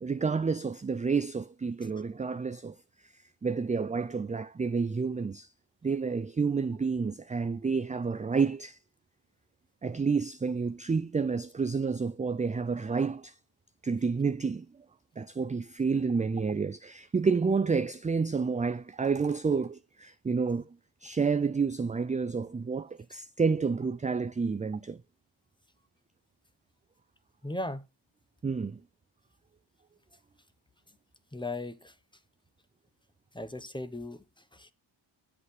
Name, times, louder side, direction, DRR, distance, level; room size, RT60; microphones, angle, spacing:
voice 1, 0.0-2.8 3.0-3.1 3.4-5.5 5.8-8.8 9.8-13.3 13.8-14.7 15.2-20.7 21.0-25.0 28.4-28.8, right 5 dB, 15° right, 0.4 m, -29 dB
voice 2, 27.4-27.8 31.3-31.9 33.3-34.2 34.5-34.7, left 2 dB, 10° left, 1.1 m, -37 dB
8.1 x 4.8 x 6.2 m
cardioid pair, 70°, 47 cm